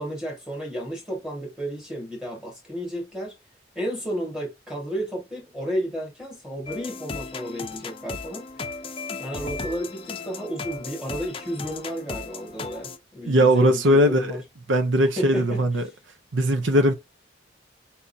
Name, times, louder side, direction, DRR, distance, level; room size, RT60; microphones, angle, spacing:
voice 1, 0.0-3.4 3.7-8.5 9.2-14.4 15.2-15.9, equal, 5° right, 1.6 m, -32 dB
sound 1, 6.7-13.0, left 4 dB, 30° left, 0.5 m, -36 dB
voice 2, 13.3-14.4 14.7-15.8 16.3-16.9, equal, 75° right, 0.7 m, -19 dB
4.2 x 3.6 x 2.7 m
head